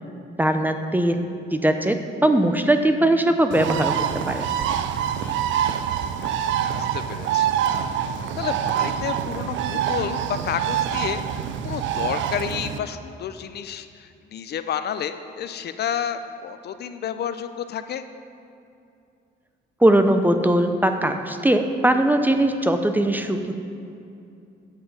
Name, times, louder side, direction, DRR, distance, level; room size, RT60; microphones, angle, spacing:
voice 1, 0.4-4.5 19.8-23.5, right 1 dB, 10° right, 7 dB, 0.4 m, -20 dB
Bird, 3.5-12.8, right 9 dB, 75° right, 0.4 m, -25 dB
voice 2, 5.2-5.6 6.7-7.5 8.4-18.0, left 8 dB, 55° left, 10 dB, 0.4 m, -30 dB
8.1 x 3.8 x 6.4 m, 2.5 s
cardioid pair, 90°, 20 cm